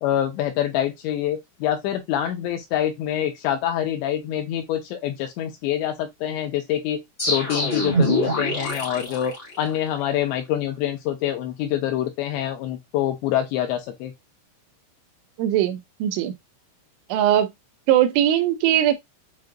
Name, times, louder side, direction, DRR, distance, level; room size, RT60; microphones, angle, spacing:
voice 1, 0.0-7.0 7.3-14.1, left 11 dB, 85° left, 2.7 m, -26 dB
sound 1, 7.2-10.0, equal, 40° left, 1.0 m, -25 dB
voice 2, 15.4-16.3 17.1-17.5 17.9-19.0, right 11 dB, 85° right, 2.9 m, -20 dB
7.5 x 2.6 x 2.4 m
omnidirectional pair, 5.6 m